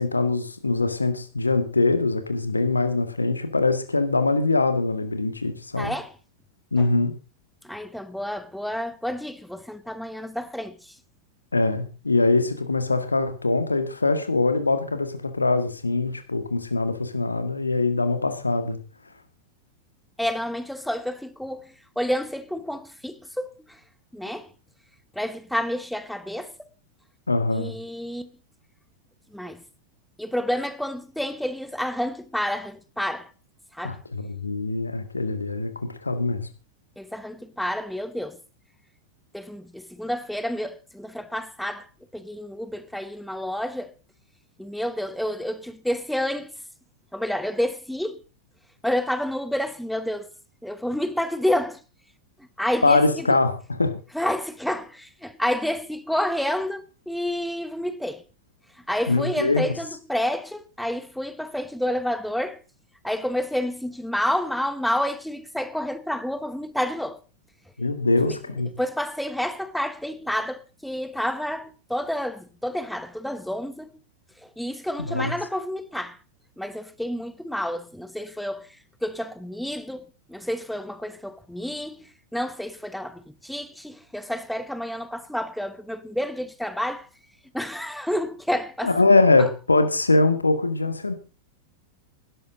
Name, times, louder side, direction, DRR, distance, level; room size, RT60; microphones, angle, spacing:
voice 1, 0.0-6.0 6.7-7.1 11.5-18.8 27.3-27.8 33.8-36.5 52.8-54.0 59.1-59.7 67.8-68.7 75.1-75.3 88.8-91.1, left 3 dB, 80° left, 1.9 m, -23 dB
voice 2, 5.8-6.1 6.8-6.9 7.6-11.0 20.2-23.8 24.1-24.5 25.1-26.7 27.5-28.3 29.3-29.6 30.2-33.3 33.7-34.0 37.0-38.4 39.3-43.9 44.6-46.6 47.1-48.2 48.8-50.3 50.6-51.8 52.4-53.4 54.1-58.2 58.9-62.6 63.0-67.2 68.2-68.4 68.8-74.0 74.4-76.2 76.6-87.1 87.5-88.9 89.4-89.5, left 1 dB, ahead, 1.0 m, -29 dB
16.5 x 12.0 x 3.9 m
figure-of-eight pair, 90°, 0 cm